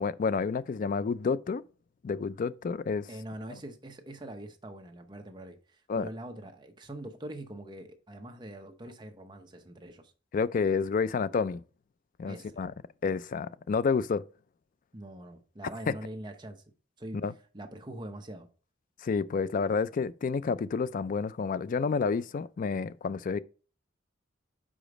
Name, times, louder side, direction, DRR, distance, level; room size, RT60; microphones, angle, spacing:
voice 1, 0.0-1.6 2.0-3.1 5.9-6.1 10.3-11.6 12.2-12.7 13.0-14.2 17.2-17.3 19.0-23.4, left 5 dB, 40° left, 0.3 m, -29 dB
voice 2, 3.1-10.1 12.3-12.6 14.9-16.6 17.0-17.2 17.5-18.5, right 1 dB, 20° right, 0.8 m, -43 dB
5.0 x 4.9 x 5.0 m
head